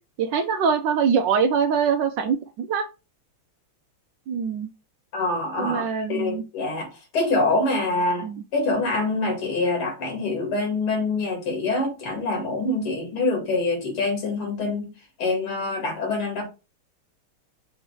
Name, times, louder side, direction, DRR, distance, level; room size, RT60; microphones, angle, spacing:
voice 1, 0.2-2.9 4.3-4.7 5.6-6.4 8.2-8.4, right 6 dB, 75° right, 1.0 m, -23 dB
voice 2, 5.1-14.9 15.2-16.4, left 2 dB, 75° left, 3.0 m, -25 dB
6.5 x 3.0 x 4.8 m
omnidirectional pair, 2.4 m